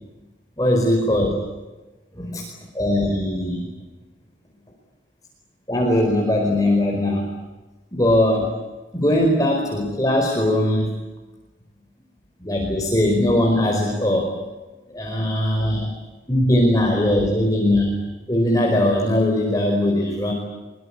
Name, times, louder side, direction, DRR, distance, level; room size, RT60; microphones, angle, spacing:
voice 1, 0.6-1.4 2.2-2.4 2.7-3.7 5.7-7.2 7.9-8.5 8.9-10.9 12.4-14.3 14.9-15.9 16.3-17.9 18.3-20.3, left 1 dB, 20° left, 0 dB, 4.9 m, -20 dB
24.0 x 23.5 x 8.8 m, 1.1 s
head